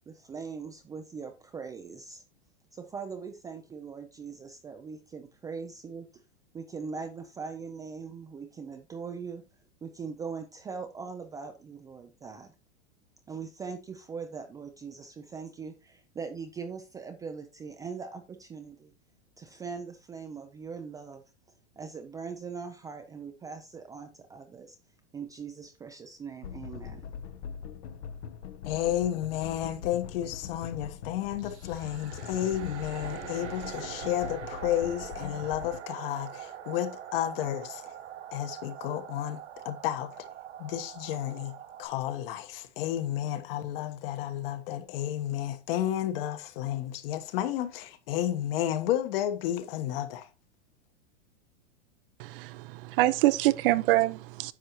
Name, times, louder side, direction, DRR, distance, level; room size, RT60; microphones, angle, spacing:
voice 1, 0.1-2.2 2.7-6.1 6.5-9.4 9.8-12.5 13.3-18.9 19.4-21.2 21.8-24.8 25.1-27.1, right 5 dB, 10° right, 0.4 m, -41 dB
sound 1, 26.4-35.8, left 7 dB, 75° left, 1.1 m, -42 dB
voice 2, 28.6-37.9 38.3-40.3 40.6-50.3, left 12 dB, 55° left, 1.3 m, -32 dB
sound 2, 31.4-41.9, right 10 dB, 85° right, 2.1 m, -43 dB
voice 3, 52.2-54.5, right 16 dB, 55° right, 0.6 m, -25 dB
10.0 x 6.6 x 3.0 m
supercardioid pair, 140°, 34 cm